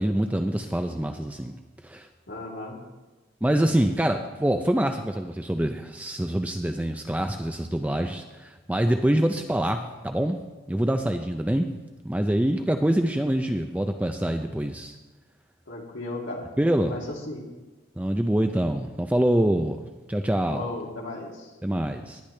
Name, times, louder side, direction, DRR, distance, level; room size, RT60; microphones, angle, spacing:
voice 1, 0.0-1.6 1.8-2.1 3.4-10.4 10.7-11.8 12.0-15.0 16.6-17.0 18.0-19.8 20.1-20.7 21.6-22.2, right 1 dB, 5° right, 6 dB, 0.4 m, -25 dB
voice 2, 2.3-2.8 15.7-16.5 16.8-17.0 17.3-17.4 20.5-21.5, left 2 dB, 70° left, -2 dB, 2.5 m, -35 dB
18.5 x 10.0 x 3.2 m, 1.2 s
head